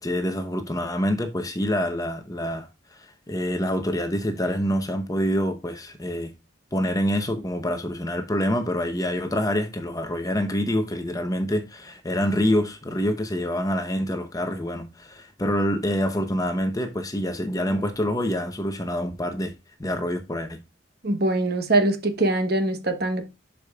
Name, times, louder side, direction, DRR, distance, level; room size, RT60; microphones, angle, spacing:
voice 1, 0.0-6.3 6.7-19.5 19.8-20.6, equal, 20° left, 0.8 m, -26 dB
voice 2, 21.0-23.2, right 2 dB, 50° right, 1.2 m, -23 dB
11.5 x 5.0 x 2.3 m
head